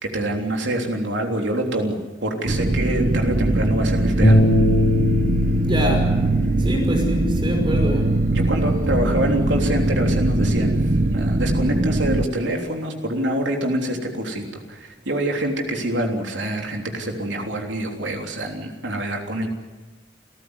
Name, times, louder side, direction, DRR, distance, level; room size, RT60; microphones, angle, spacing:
voice 1, 0.0-4.4 8.3-10.8 11.1-19.5, right 1 dB, 80° right, 2 dB, 3.4 m, -25 dB
sound 1, 2.5-12.3, right 1 dB, 45° right, 1.0 m, -21 dB
Bass guitar, 4.2-10.5, left 1 dB, 50° left, 3.6 m, -24 dB
voice 2, 5.6-6.1 6.6-8.1, right 1 dB, 25° right, 3 dB, 5.6 m, -25 dB
28.5 x 14.5 x 9.7 m, 1.2 s
head